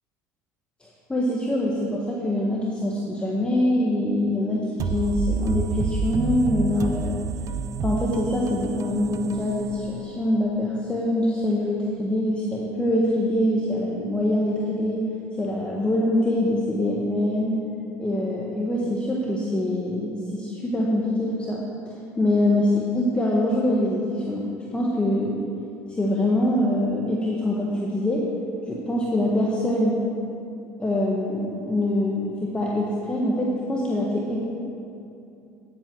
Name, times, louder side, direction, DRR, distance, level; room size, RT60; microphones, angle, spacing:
voice 1, 1.1-7.2 7.8-15.1 15.4-17.6 18.0-24.5 24.7-25.4 25.9-28.2 28.7-30.0 30.8-34.4, left 1 dB, 15° left, -4 dB, 1.6 m, -24 dB
sound 1, 4.8-10.4, right 5 dB, 45° right, 0.6 m, -29 dB
9.7 x 8.0 x 6.3 m, 2.7 s
supercardioid pair, 80°, 7 cm